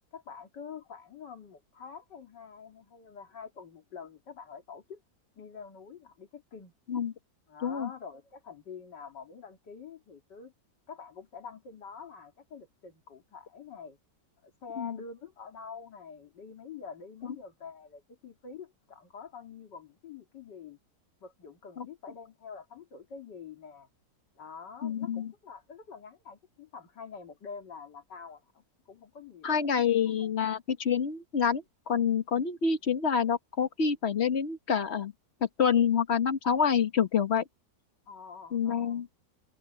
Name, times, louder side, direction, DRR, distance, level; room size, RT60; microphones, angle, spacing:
voice 1, 0.1-5.0 5.4-6.7 7.5-10.5 10.9-14.0 14.4-20.8 21.2-23.9 24.4-29.6 30.1-30.3 38.1-39.0, left 6 dB, 90° left, 3.0 m, -46 dB
voice 2, 24.8-25.3 29.4-35.1 35.4-37.4 38.5-39.1, left 7 dB, 40° left, 1.4 m, -27 dB
omnidirectional pair, 1.8 m